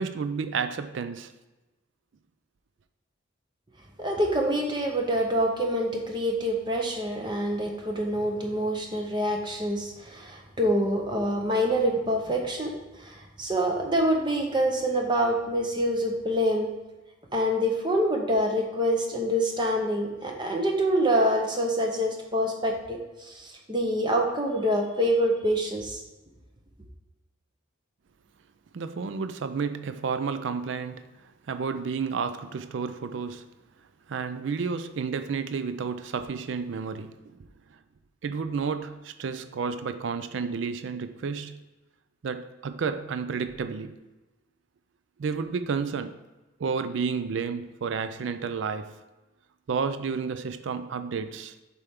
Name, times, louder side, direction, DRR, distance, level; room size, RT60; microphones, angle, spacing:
voice 1, 0.0-1.3 28.7-31.1 31.5-33.5 34.1-37.4 38.2-41.6 42.2-44.0 45.2-46.2 46.6-49.0 49.7-51.5, right 5 dB, 70° right, 0.4 m, -31 dB
voice 2, 4.0-16.7 17.3-26.0, equal, 25° right, 0.8 m, -26 dB
6.8 x 4.5 x 3.6 m
head